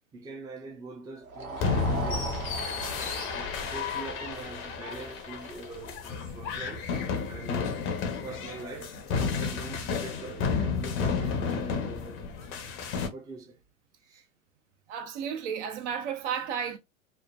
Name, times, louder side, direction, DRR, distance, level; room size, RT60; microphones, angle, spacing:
voice 1, 0.1-2.6 3.3-6.9 7.2-7.8 8.2-12.5 13.1-13.6 14.0-14.3, right 3 dB, 10° right, 0.5 m, -43 dB
sound 1, 1.2-7.5, right 3 dB, 90° right, 0.9 m, -40 dB
sound 2, 1.6-13.1, left 5 dB, 30° left, 0.6 m, -32 dB
voice 2, 14.9-16.8, right 7 dB, 60° right, 0.7 m, -33 dB
3.1 x 2.1 x 2.3 m
hypercardioid pair, 120°, 41 cm